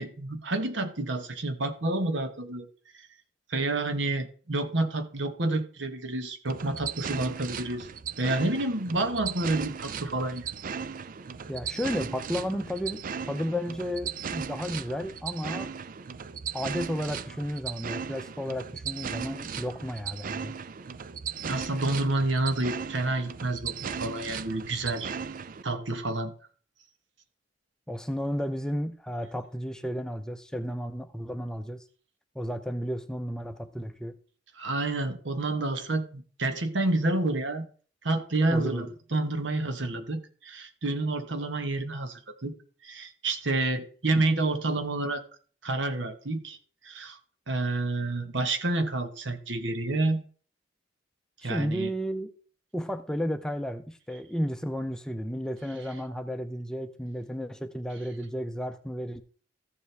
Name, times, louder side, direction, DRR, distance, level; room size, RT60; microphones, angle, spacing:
voice 1, 0.0-2.7 3.5-7.9 8.2-10.5 21.4-25.1 25.6-26.3 34.6-37.7 38.0-42.5 42.8-45.2 45.6-46.6 46.8-47.2 47.5-50.2 51.4-51.9, right 2 dB, 75° right, 1.3 m, -29 dB
sound 1, 6.5-25.6, right 6 dB, 45° right, 0.4 m, -37 dB
voice 2, 11.5-15.7 16.5-20.6 27.9-31.8 32.4-34.2 38.5-38.9 51.4-52.3 52.7-59.2, equal, 5° left, 0.6 m, -33 dB
14.0 x 7.1 x 3.4 m
head